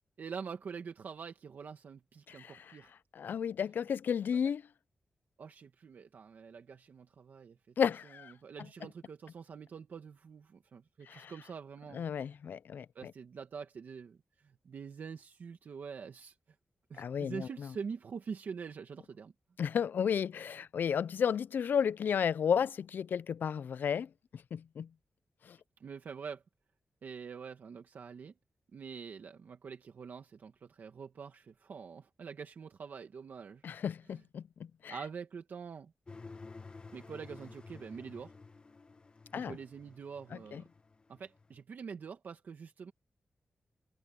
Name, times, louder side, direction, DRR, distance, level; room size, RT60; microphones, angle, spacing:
voice 1, 0.2-2.9 5.4-7.7 8.1-12.1 12.9-16.3 16.9-19.3 25.8-26.4 27.0-28.3 28.7-33.6 34.1-34.2 34.9-35.9 36.9-38.3 39.3-40.6 41.1-42.9, right 6 dB, 65° right, 1.6 m, -45 dB
voice 2, 3.1-4.6 7.8-8.3 11.1-11.3 11.9-13.1 17.0-17.7 19.6-24.1 24.5-24.9 25.5-25.6 33.6-35.0 39.3-39.6 40.5-40.6, left 7 dB, 75° left, 0.4 m, -33 dB
sound 1, 36.1-41.6, left 3 dB, 30° left, 0.9 m, -52 dB
wide cardioid pair, 165°, 3 cm